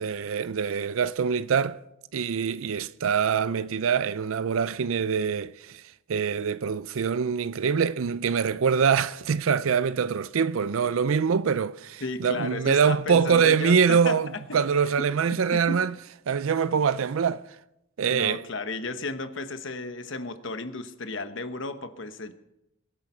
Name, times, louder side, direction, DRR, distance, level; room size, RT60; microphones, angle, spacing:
voice 1, 0.0-1.8 2.1-5.8 6.1-15.9 16.3-17.4 18.0-18.4, right 6 dB, 70° right, 0.4 m, -24 dB
voice 2, 12.0-14.2 14.5-14.6 15.5-15.8 18.1-22.3, left 3 dB, 60° left, 1.1 m, -34 dB
22.5 x 8.8 x 5.6 m
head